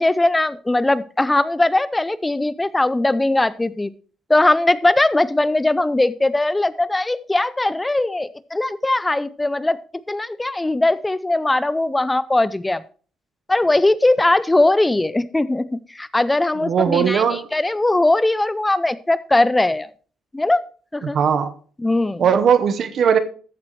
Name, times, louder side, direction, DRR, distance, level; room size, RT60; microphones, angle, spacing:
voice 1, 0.0-3.9 4.3-9.8 10.1-12.8 13.5-17.2 17.5-19.9 20.3-20.6 20.9-21.2 21.8-22.2, left 2 dB, 15° left, 0.4 m, -19 dB
voice 2, 16.6-17.5 21.0-21.5 22.2-23.2, right 7 dB, 60° right, 1.0 m, -18 dB
14.0 x 7.4 x 3.1 m
cardioid pair, 90°, 0 cm